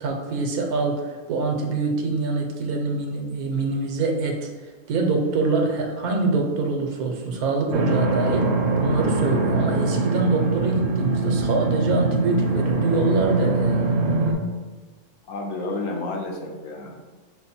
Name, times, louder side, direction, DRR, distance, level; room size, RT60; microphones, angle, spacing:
voice 1, 0.0-4.5 4.9-13.9, right 3 dB, 85° right, 2 dB, 1.2 m, -25 dB
sound 1, 7.7-14.3, right 3 dB, 65° right, 1.0 m, -23 dB
voice 2, 15.3-17.0, left 2 dB, 70° left, 1 dB, 1.1 m, -30 dB
5.6 x 2.1 x 4.2 m, 1.3 s
omnidirectional pair, 1.5 m